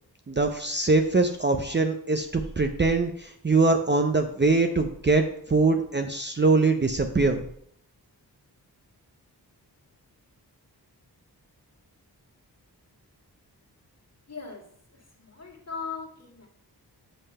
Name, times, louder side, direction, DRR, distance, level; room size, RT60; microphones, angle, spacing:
voice 1, 0.3-7.4, right 3 dB, 25° right, 5 dB, 0.6 m, -23 dB
voice 2, 14.3-14.6 14.9-16.5, left 5 dB, 40° left, 0 dB, 2.1 m, -39 dB
7.8 x 3.3 x 5.4 m, 0.66 s
cardioid pair, 55°, 40 cm